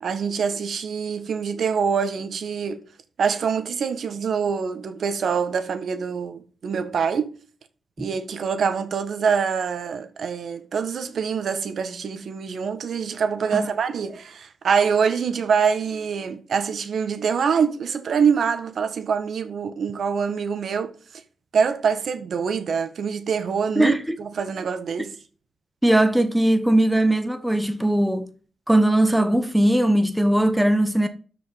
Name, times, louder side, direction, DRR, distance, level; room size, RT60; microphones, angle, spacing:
voice 1, 0.0-2.8 3.2-7.3 8.0-20.9 21.5-23.9 24.2-25.1, right 6 dB, 65° right, 1.5 m, -25 dB
voice 2, 23.8-24.2 25.8-28.3 28.7-31.1, right 1 dB, 5° right, 1.0 m, -19 dB
12.5 x 5.4 x 5.4 m
wide cardioid pair, 115°, 0 cm